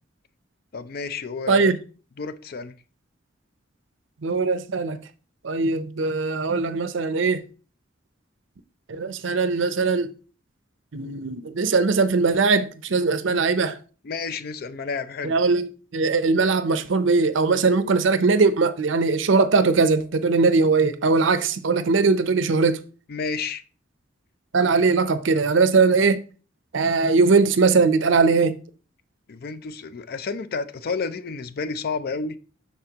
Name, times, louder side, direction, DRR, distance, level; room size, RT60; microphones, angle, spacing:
voice 1, 0.7-1.7 2.2-2.7 14.0-15.3 23.1-23.6 29.3-32.4, left 4 dB, 50° left, 0.4 m, -30 dB
voice 2, 4.2-5.0 5.4-7.4 8.9-10.1 10.9-13.8 15.2-15.7 15.9-22.8 24.5-26.2 26.7-28.6, right 4 dB, 70° right, 0.6 m, -20 dB
12.0 x 4.2 x 2.9 m
head